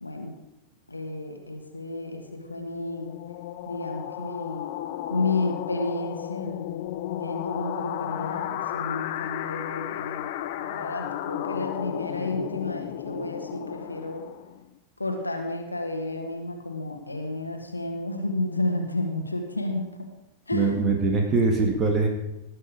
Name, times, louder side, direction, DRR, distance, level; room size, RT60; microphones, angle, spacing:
voice 1, 0.0-0.3 0.9-3.1 3.6-4.7 5.1-6.5 7.2-10.3 10.6-14.2 15.0-20.1 20.5-20.7, left 2 dB, 80° left, 3 dB, 1.6 m, -31 dB
sound 1, 2.1-14.7, left 12 dB, 50° left, 0.7 m, -34 dB
voice 2, 20.5-22.1, right 3 dB, 25° right, 2 dB, 2.0 m, -22 dB
19.0 x 6.6 x 5.2 m, 0.93 s
figure-of-eight pair, 90°, 0 cm